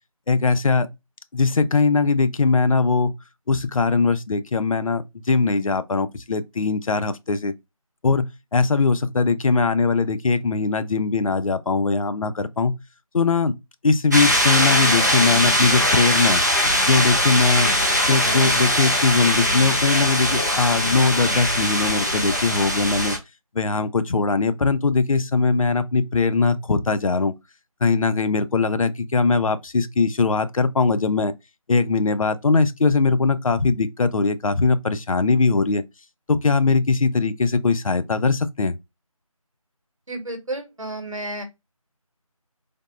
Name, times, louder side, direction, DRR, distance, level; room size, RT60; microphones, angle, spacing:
voice 1, 0.3-0.9 1.3-3.1 3.5-7.5 8.0-12.7 13.1-13.5 13.8-16.4 16.9-17.7 18.1-23.2 23.5-27.3 27.8-31.3 31.7-35.8 36.3-38.7, left 4 dB, 65° left, 0.4 m, -20 dB
sound 1, 14.1-23.2, equal, 30° right, 0.5 m, -21 dB
voice 2, 40.1-41.4, right 2 dB, 60° right, 1.1 m, -31 dB
3.4 x 2.0 x 2.3 m
figure-of-eight pair, 175°, 19 cm